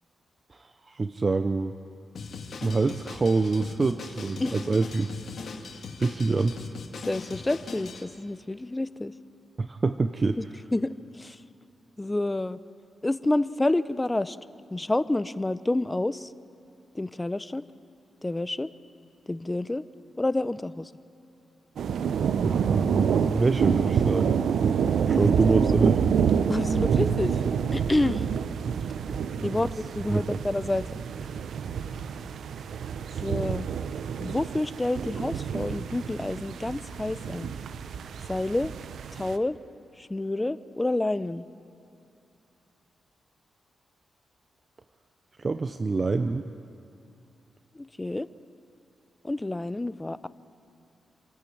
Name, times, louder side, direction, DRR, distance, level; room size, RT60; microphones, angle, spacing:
voice 1, 0.6-1.7 2.6-5.1 6.0-6.6 9.6-10.4 22.4-24.3 25.1-26.1 29.4-29.5 30.1-30.4 45.4-46.5, right 3 dB, 40° right, 9 dB, 0.7 m, -26 dB
Drum kit, 2.1-8.0, left 4 dB, 65° left, 2.1 m, -40 dB
voice 2, 7.1-9.1 10.4-10.5 10.7-11.4 12.0-12.6 13.0-14.4 14.7-16.3 16.9-17.6 18.2-18.7 19.3-19.8 20.2-20.9 25.1-25.3 26.5-27.4 27.7-28.2 29.4-31.0 33.2-33.7 34.2-37.5 38.3-38.7 39.1-39.6 40.0-41.5 47.7-48.3 49.2-50.3, left 2 dB, 20° left, 15 dB, 0.7 m, -28 dB
sound 1, 21.8-39.4, right 7 dB, 75° right, 0.7 m, -27 dB
27.5 x 11.5 x 8.6 m, 2.8 s
cardioid pair, 60°, 0 cm